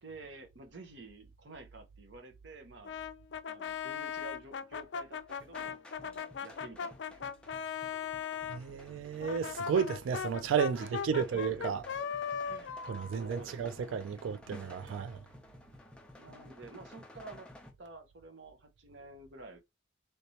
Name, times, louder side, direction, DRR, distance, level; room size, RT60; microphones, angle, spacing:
voice 1, 0.0-3.0 3.5-7.3 10.7-11.7 12.4-13.7 14.1-14.2 16.2-17.5 17.8-19.6, right 3 dB, 70° right, 0.8 m, -51 dB
Brass instrument, 2.8-8.6 9.2-14.0, left 7 dB, 65° left, 0.4 m, -39 dB
sound 1, 5.3-17.7, left 1 dB, 5° left, 0.4 m, -53 dB
voice 2, 8.5-11.8 12.9-15.2, right 7 dB, 85° right, 0.3 m, -33 dB
3.3 x 3.1 x 2.8 m
head